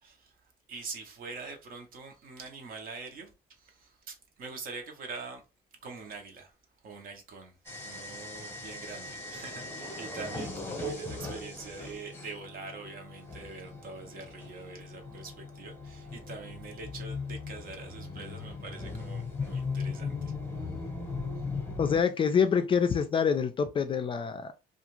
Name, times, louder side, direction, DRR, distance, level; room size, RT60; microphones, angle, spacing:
voice 1, 0.0-0.3 0.7-5.4 5.8-6.5 6.8-7.6 7.8-20.3, right 4 dB, 60° right, 0.9 m, -44 dB
sound 1, 7.6-22.0, left 3 dB, 15° left, 0.9 m, -38 dB
voice 2, 21.8-24.5, left 6 dB, 30° left, 0.4 m, -26 dB
2.4 x 2.3 x 3.0 m
cardioid pair, 110°, 17 cm